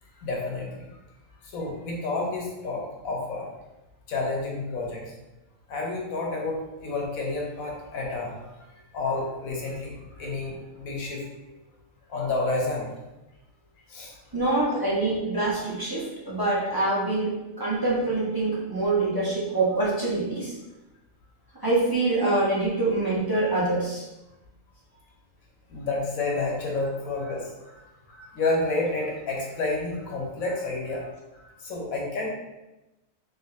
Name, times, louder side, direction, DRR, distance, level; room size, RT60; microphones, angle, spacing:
voice 1, 0.2-0.8 1.5-3.5 4.1-5.0 5.7-6.6 6.8-8.3 8.9-11.5 12.1-12.9 13.9-14.1 14.7-14.8 19.7-19.8 25.7-32.3, left 3 dB, 85° left, -2 dB, 1.4 m, -30 dB
voice 2, 14.3-20.5 21.6-24.1, right 2 dB, 20° right, -8 dB, 0.9 m, -25 dB
3.8 x 3.8 x 2.8 m, 1.0 s
omnidirectional pair, 1.4 m